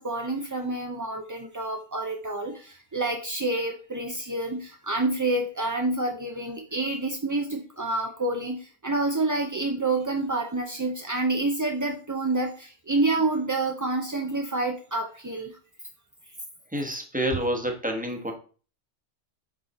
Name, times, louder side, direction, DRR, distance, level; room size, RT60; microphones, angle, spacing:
voice 1, 0.0-15.6, right 2 dB, 30° right, 2 dB, 0.3 m, -28 dB
voice 2, 16.7-18.3, right 1 dB, 5° right, 3 dB, 1.0 m, -28 dB
7.0 x 4.2 x 4.1 m, 0.39 s
omnidirectional pair, 1.3 m